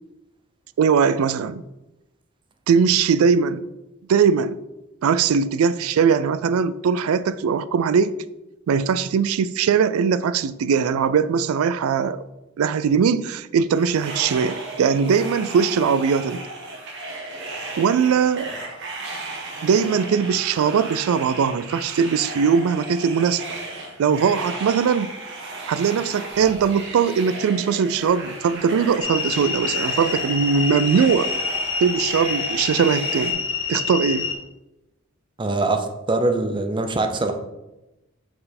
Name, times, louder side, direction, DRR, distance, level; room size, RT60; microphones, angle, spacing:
voice 1, 0.8-1.6 2.7-3.7 4.1-4.6 5.0-8.1 8.7-12.2 12.6-16.4 17.8-18.5 19.6-23.4 24.0-25.1 25.7-31.3 31.8-33.4 33.7-34.3, right 6 dB, 90° right, 0.3 m, -20 dB
sound 1, 13.7-33.3, right 2 dB, 60° right, 1.1 m, -35 dB
sound 2, 29.0-34.3, left 5 dB, 65° left, 1.0 m, -27 dB
voice 2, 35.4-37.3, right 2 dB, 25° right, 0.5 m, -23 dB
5.3 x 4.3 x 4.2 m
head